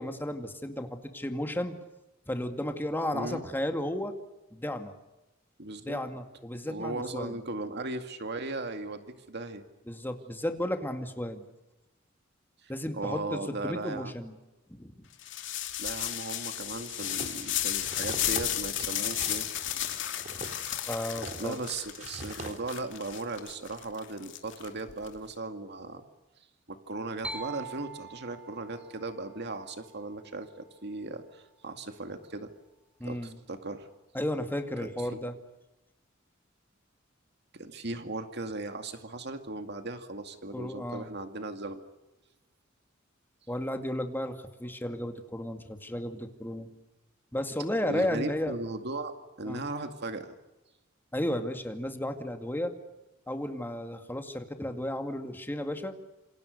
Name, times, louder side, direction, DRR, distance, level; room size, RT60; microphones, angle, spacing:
voice 1, 0.0-1.8 2.3-4.1 4.5-4.9 5.8-7.4 9.9-11.5 12.7-14.3 14.7-14.9 20.9-21.6 33.0-33.4 34.1-35.4 40.5-41.1 43.5-46.7 47.3-48.5 49.5-49.6 51.1-52.7 53.3-56.0, left 1 dB, 10° left, 6 dB, 2.2 m, -33 dB
voice 2, 3.1-3.4 5.6-6.0 6.7-9.6 12.6-14.1 15.8-19.5 21.4-26.0 26.7-32.5 33.0-33.9 34.8-35.2 37.5-41.8 47.9-50.3, right 2 dB, 60° right, 7 dB, 2.2 m, -37 dB
sound 1, 15.2-25.1, left 12 dB, 65° left, 2.7 m, -34 dB
sound 2, 16.9-22.6, right 2 dB, 40° right, 3.1 m, -44 dB
sound 3, 27.2-30.9, right 3 dB, 5° right, 2.9 m, -44 dB
27.5 x 27.0 x 6.6 m, 1.0 s
head